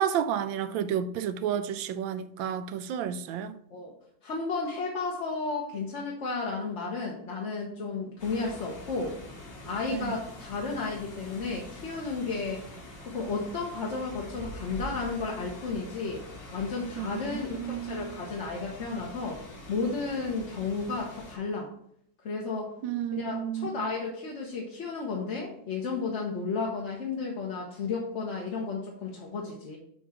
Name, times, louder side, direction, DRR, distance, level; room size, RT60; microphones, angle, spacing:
voice 1, 0.0-3.6 9.9-10.2 17.0-18.2 22.8-23.9, right 9 dB, 85° right, 1.3 m, -31 dB
voice 2, 4.2-9.2 9.6-12.6 13.0-16.2 16.5-19.4 19.7-21.7 22.2-22.7 23.1-29.8, left 4 dB, 45° left, 1.1 m, -33 dB
sound 1, 8.2-21.4, left 1 dB, 70° left, 2.2 m, -45 dB
7.2 x 3.1 x 5.8 m
omnidirectional pair, 2.0 m